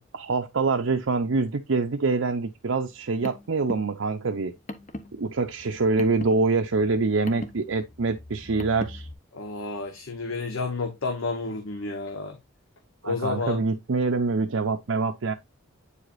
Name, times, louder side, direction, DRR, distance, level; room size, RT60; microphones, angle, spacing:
voice 1, 0.1-4.5 5.2-9.1 13.0-15.3, right 3 dB, 65° right, 0.6 m, -25 dB
Car, 2.9-9.1, left 1 dB, 35° left, 0.7 m, -40 dB
voice 2, 9.3-12.4 13.0-13.6, left 3 dB, 70° left, 1.0 m, -30 dB
8.3 x 4.9 x 2.5 m
head